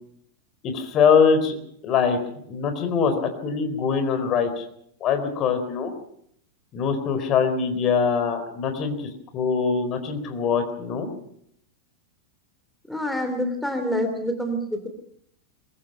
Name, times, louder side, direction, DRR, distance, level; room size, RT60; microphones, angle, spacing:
voice 1, 0.6-1.6 1.8-2.2 2.5-4.6 5.0-5.9 6.7-11.1, left 6 dB, 35° left, 8 dB, 4.0 m, -23 dB
voice 2, 12.9-14.9, equal, 5° left, 6 dB, 2.9 m, -27 dB
23.0 x 22.5 x 5.6 m, 0.69 s
figure-of-eight pair, 90°, 0 cm